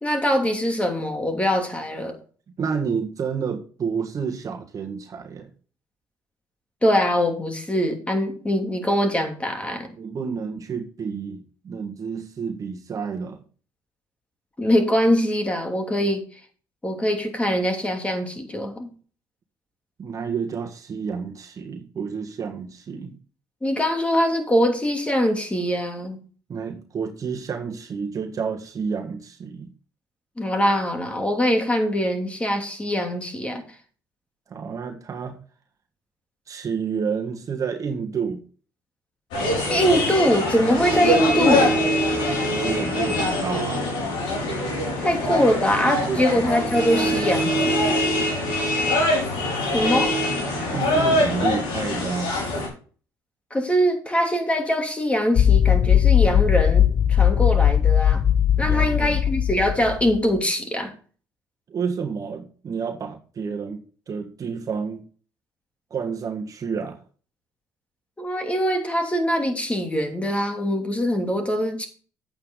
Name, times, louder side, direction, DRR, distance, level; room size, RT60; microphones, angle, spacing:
voice 1, 0.0-2.2 6.8-9.9 14.6-16.2 16.8-18.9 23.6-26.2 30.4-33.6 39.4-41.8 45.0-47.8 49.7-50.1 53.5-58.2 58.6-60.9 68.2-71.9, equal, 15° left, 2.7 m, -23 dB
voice 2, 2.6-5.5 10.0-13.4 20.0-23.2 26.5-29.7 34.5-35.4 36.5-38.4 42.4-43.9 45.8-47.1 50.7-52.4 58.6-59.2 61.7-65.1 65.9-67.0, right 6 dB, 45° right, 1.7 m, -30 dB
sound 1, 39.3-52.7, left 1 dB, 80° left, 5.1 m, -23 dB
sound 2, 55.4-60.2, left 9 dB, 50° left, 0.4 m, -18 dB
8.9 x 8.5 x 3.8 m
supercardioid pair, 80°, 8 cm